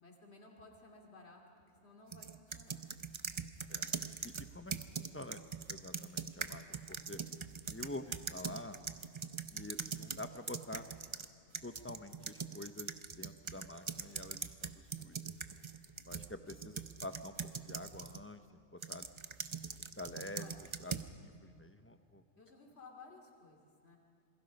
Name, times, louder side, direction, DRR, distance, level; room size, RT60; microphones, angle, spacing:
voice 1, 0.0-2.8 3.7-3.9 20.3-20.6 22.4-24.0, left 3 dB, 55° left, 1 dB, 3.0 m, -57 dB
sound 1, 2.1-11.3 11.5-18.2 18.8-21.1, right 5 dB, 35° right, 0.5 m, -42 dB
voice 2, 4.2-5.4 5.7-7.2 7.7-8.8 9.5-10.8 11.6-15.3 16.1-17.3 17.6-18.4 18.7-19.0 19.8-22.2, left 2 dB, 15° left, 9 dB, 0.7 m, -48 dB
27.5 x 22.0 x 5.4 m, 2.4 s
omnidirectional pair, 1.3 m